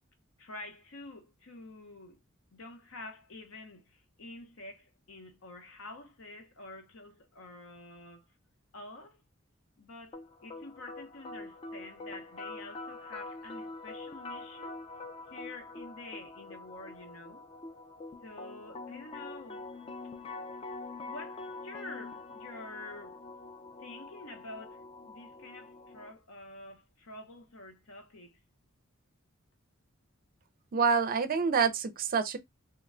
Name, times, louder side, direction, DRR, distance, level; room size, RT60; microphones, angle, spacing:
voice 1, 0.4-2.2 2.5-8.3 8.7-9.2 9.8-14.8 15.3-17.5 18.2-19.7 21.0-23.2 23.8-28.4, left 2 dB, 75° left, 0.8 m, -48 dB
sound 1, 10.1-26.1, left 3 dB, 30° left, 0.4 m, -45 dB
voice 2, 30.7-32.4, right 5 dB, 45° right, 0.4 m, -27 dB
2.9 x 2.2 x 3.6 m
head